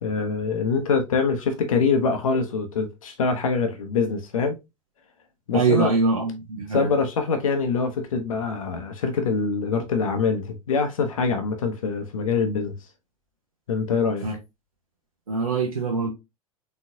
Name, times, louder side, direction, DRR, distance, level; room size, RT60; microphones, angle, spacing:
voice 1, 0.0-4.6 5.5-5.9 6.7-12.7 13.7-14.2, left 5 dB, 70° left, 0.8 m, -24 dB
voice 2, 5.5-6.9 14.2-14.4 15.3-16.1, right 4 dB, 80° right, 0.8 m, -23 dB
4.2 x 3.9 x 2.6 m
figure-of-eight pair, 75°, 18 cm